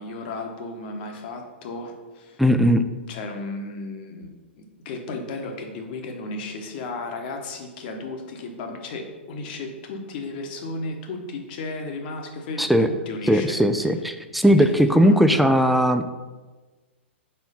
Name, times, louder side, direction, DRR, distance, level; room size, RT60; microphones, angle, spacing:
voice 1, 0.0-2.4 3.1-4.3 4.6-13.6 14.6-15.5, left 2 dB, 50° left, 3 dB, 1.1 m, -34 dB
voice 2, 2.4-2.8 12.6-12.9 13.3-16.1, equal, ahead, 8 dB, 0.3 m, -18 dB
4.4 x 4.4 x 5.4 m, 1.3 s
figure-of-eight pair, 110°, 7 cm